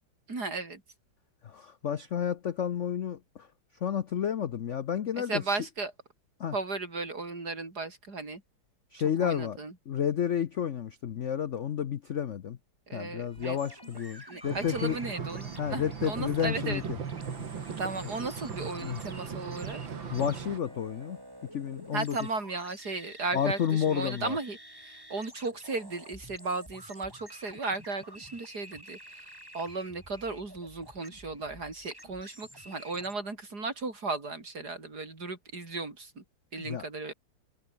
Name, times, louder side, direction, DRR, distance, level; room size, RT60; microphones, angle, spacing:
voice 1, 0.3-0.8 5.1-5.9 6.5-8.4 9.2-9.7 12.9-13.6 14.3-16.8 17.8-19.8 21.9-29.3 29.5-36.2 36.5-37.1, right 3 dB, 45° right, 5.4 m, -35 dB
voice 2, 1.4-3.5 3.8-5.4 6.4-6.5 8.9-9.6 9.9-12.6 12.9-15.0 15.6-16.8 18.8-19.0 20.1-21.2 21.5-22.2 23.3-24.4 36.6-36.9, left 8 dB, 75° left, 0.6 m, -31 dB
sound 1, 13.1-21.3, left 1 dB, 20° left, 7.1 m, -60 dB
sound 2, 13.3-33.1, equal, 10° right, 8.1 m, -50 dB
sound 3, 14.4-20.6, right 6 dB, 60° right, 2.8 m, -38 dB
omnidirectional pair, 2.3 m